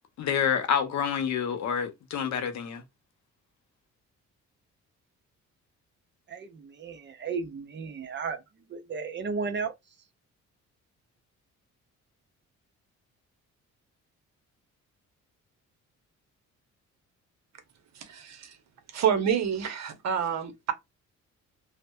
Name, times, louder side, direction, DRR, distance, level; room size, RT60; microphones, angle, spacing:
voice 1, 0.2-2.8, left 7 dB, 65° left, 0.7 m, -28 dB
voice 2, 6.3-8.4 8.7-9.7, right 5 dB, 40° right, 0.6 m, -34 dB
voice 3, 18.0-18.6 18.9-20.7, right 8 dB, 60° right, 0.8 m, -28 dB
2.7 x 2.1 x 2.2 m
cardioid pair, 90°, 30 cm